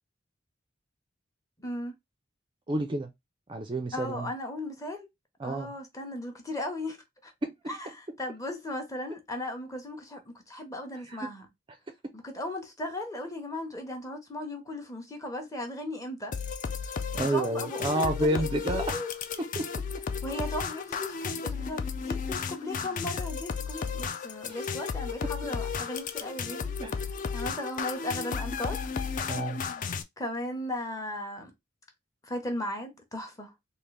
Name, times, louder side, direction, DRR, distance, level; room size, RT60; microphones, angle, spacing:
voice 1, 1.6-1.9 3.9-5.1 5.4-7.3 7.7-11.5 12.1-16.3 17.3-19.1 20.2-26.7 27.3-28.8 30.2-31.5 32.2-33.5, left 1 dB, 15° left, 0.8 m, -36 dB
voice 2, 2.7-3.1 3.5-4.3 5.4-5.7 7.4-7.8 11.1-11.3 17.1-19.0 19.4-19.7 26.6-26.9 29.3-29.6, right 1 dB, 25° right, 0.4 m, -30 dB
sound 1, 16.3-30.0, left 5 dB, 40° left, 0.4 m, -34 dB
3.6 x 2.4 x 3.2 m
head